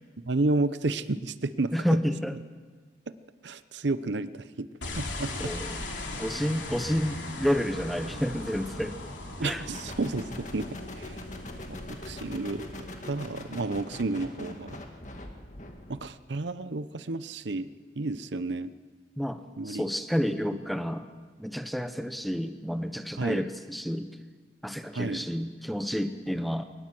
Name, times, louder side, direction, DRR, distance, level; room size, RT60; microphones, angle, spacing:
voice 1, 0.2-1.7 3.4-4.7 5.0-5.3 9.4-10.7 11.0-11.2 11.9-14.8 15.9-17.7 18.0-18.7 19.6-19.9 23.2-23.4 24.9-25.2, right 2 dB, 75° right, 14 dB, 0.8 m, -31 dB
voice 2, 1.7-2.4 5.4-5.8 6.2-9.0 9.4-9.6 19.2-19.4 19.6-21.1 21.4-24.1 24.6-26.7, equal, ahead, 9 dB, 0.8 m, -30 dB
sound 1, 4.8-14.2, left 2 dB, 85° left, 3.3 m, -39 dB
sound 2, 9.7-16.1, left 1 dB, 40° left, 1.9 m, -43 dB
22.0 x 19.5 x 7.7 m, 1.5 s
head